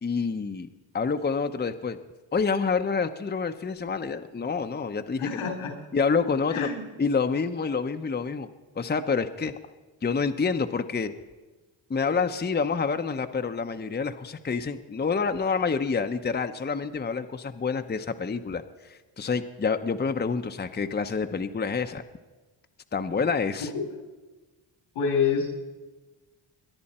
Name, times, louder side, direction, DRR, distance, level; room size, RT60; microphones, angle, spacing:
voice 1, 0.0-0.7 0.9-2.0 2.3-5.5 5.9-6.7 7.0-8.5 8.8-9.5 10.0-11.1 11.9-22.0 22.9-23.7, left 5 dB, 20° left, 7 dB, 0.8 m, -27 dB
voice 2, 5.2-5.7 6.5-6.9 23.7-23.9 24.9-25.5, left 6 dB, 90° left, 3 dB, 3.3 m, -27 dB
22.5 x 10.5 x 4.3 m, 1.2 s
cardioid pair, 65°, 50 cm